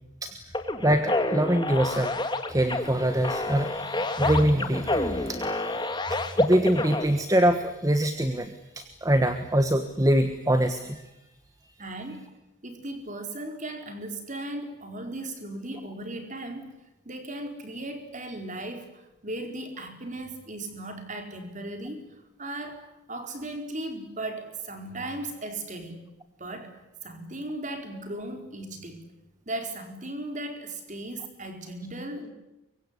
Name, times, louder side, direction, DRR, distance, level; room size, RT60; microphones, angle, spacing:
sound 1, 0.5-7.0, left 2 dB, 20° left, 1.9 m, -28 dB
voice 1, 0.8-2.2 2.4-11.0 11.6-11.7, right 1 dB, 15° right, 8 dB, 1.4 m, -24 dB
voice 2, 11.8-12.3 12.6-16.7 17.0-26.0 26.4-29.0 29.5-32.3, right 1 dB, 35° right, 5 dB, 4.5 m, -37 dB
24.0 x 23.5 x 9.8 m, 0.95 s
head